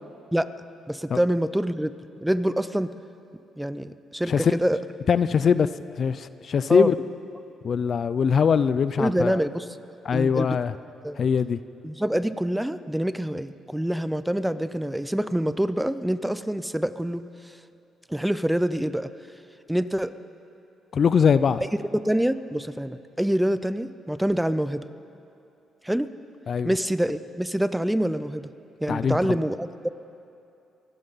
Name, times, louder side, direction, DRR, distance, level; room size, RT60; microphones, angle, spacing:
voice 1, 0.9-1.9 2.2-2.9 3.6-4.8 6.7-6.9 9.0-9.7 10.1-10.6 11.0-11.3 11.8-17.2 18.1-19.1 19.7-20.1 21.9-24.8 25.8-26.1 26.6-28.5 28.8-29.9, right 1 dB, 5° right, 13 dB, 0.5 m, -26 dB
voice 2, 4.3-4.6 5.1-5.7 6.0-6.9 7.6-9.4 10.1-10.7 11.2-11.6 20.9-21.6 26.5-26.7 28.9-29.4, left 6 dB, 50° left, 14 dB, 0.4 m, -22 dB
24.0 x 12.0 x 4.0 m, 2.7 s
cardioid pair, 90°, 0 cm